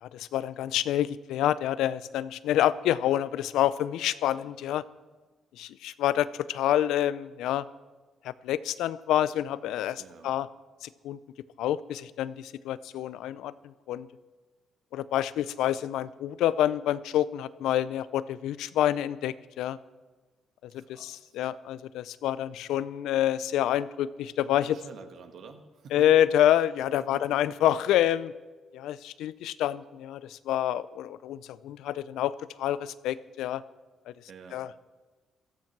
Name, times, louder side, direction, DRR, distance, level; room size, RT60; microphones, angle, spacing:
voice 1, 0.0-4.8 5.6-7.6 8.2-10.5 10.8-11.2 11.6-14.1 14.9-19.8 20.7-24.7 25.9-28.3 28.7-32.3 32.6-33.6 34.5-34.7, left 12 dB, 85° left, 17 dB, 0.5 m, -27 dB
voice 2, 10.0-10.3 20.7-21.4 24.5-26.1 27.0-28.1 34.3-34.6, right 5 dB, 65° right, 6 dB, 1.8 m, -49 dB
16.0 x 14.0 x 5.9 m, 1.3 s
cardioid pair, 90°, 0 cm